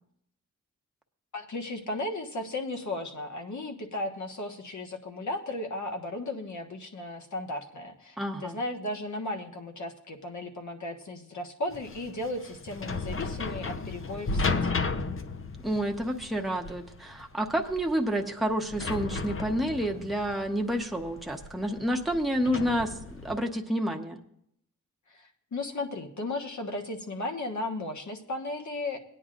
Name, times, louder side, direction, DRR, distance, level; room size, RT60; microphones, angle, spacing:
voice 1, 1.3-14.8 25.1-29.0, left 2 dB, 65° left, 2 dB, 1.5 m, -35 dB
voice 2, 8.2-8.6 15.6-24.2, equal, ahead, 2 dB, 0.9 m, -29 dB
sound 1, 11.7-23.4, left 3 dB, 40° left, 0.7 m, -34 dB
18.5 x 9.7 x 2.5 m, 0.72 s
wide cardioid pair, 80°, 32 cm